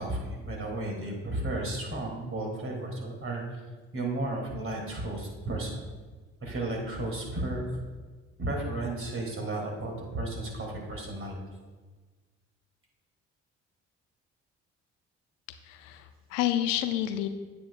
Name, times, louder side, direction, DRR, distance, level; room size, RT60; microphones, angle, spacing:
voice 1, 0.0-3.6 3.9-5.8 6.4-7.8 8.4-11.4, right 2 dB, 35° right, 0 dB, 2.5 m, -33 dB
voice 2, 15.6-17.3, left 12 dB, 80° left, 10 dB, 0.5 m, -29 dB
8.9 x 7.8 x 2.4 m, 1.3 s
hypercardioid pair, 50°, 36 cm